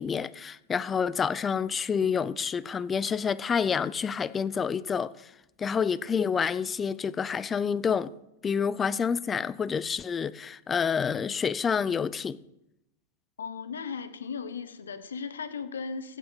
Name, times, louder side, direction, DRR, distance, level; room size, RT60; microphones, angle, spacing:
voice 1, 0.0-5.1 5.6-8.1 8.4-12.4, left 6 dB, 20° left, 0.4 m, -28 dB
voice 2, 13.4-16.2, left 5 dB, 90° left, 0.8 m, -36 dB
15.5 x 5.8 x 5.7 m
hypercardioid pair, 105°, 0 cm